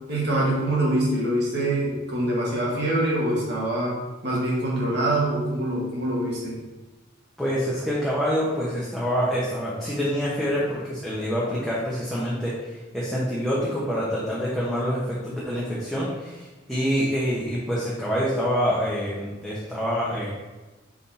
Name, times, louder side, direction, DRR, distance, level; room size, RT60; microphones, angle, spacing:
voice 1, 0.1-6.5, right 1 dB, 60° right, -5 dB, 1.9 m, -24 dB
voice 2, 7.4-20.4, equal, ahead, -8 dB, 1.0 m, -26 dB
5.7 x 4.1 x 4.1 m, 1.2 s
head